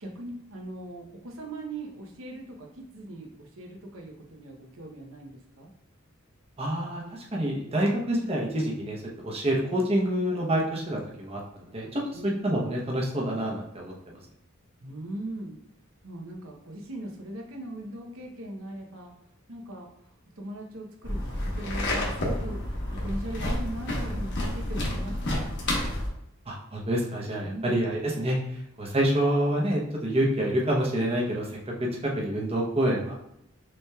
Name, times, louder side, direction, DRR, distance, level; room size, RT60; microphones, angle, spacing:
voice 1, 0.0-5.7 12.1-12.4 14.8-15.6 16.0-19.1 19.5-19.9 20.4-25.6 27.4-27.7, right 1 dB, 75° right, 1 dB, 0.9 m, -40 dB
voice 2, 6.6-14.2 26.5-33.1, right 1 dB, 30° right, -2 dB, 0.9 m, -27 dB
sound 1, 21.0-26.1, left 1 dB, 55° left, 1.1 m, -30 dB
6.1 x 2.9 x 2.3 m, 0.79 s
head